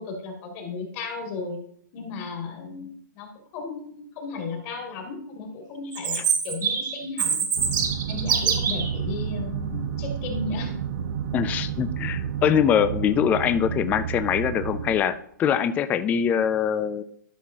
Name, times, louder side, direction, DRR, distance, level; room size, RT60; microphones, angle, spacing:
voice 1, 0.0-1.6 1.9-3.3 3.5-7.4 8.1-10.7, left 4 dB, 35° left, 2 dB, 2.4 m, -35 dB
Chirp tweet, 5.9-8.9, right 6 dB, 70° right, 1.9 m, -25 dB
sound 1, 7.5-15.0, right 8 dB, 55° right, 0.7 m, -30 dB
voice 2, 11.3-17.0, left 8 dB, 15° left, 13 dB, 0.3 m, -23 dB
12.5 x 6.0 x 2.8 m, 0.66 s
hypercardioid pair, 135°, 10 cm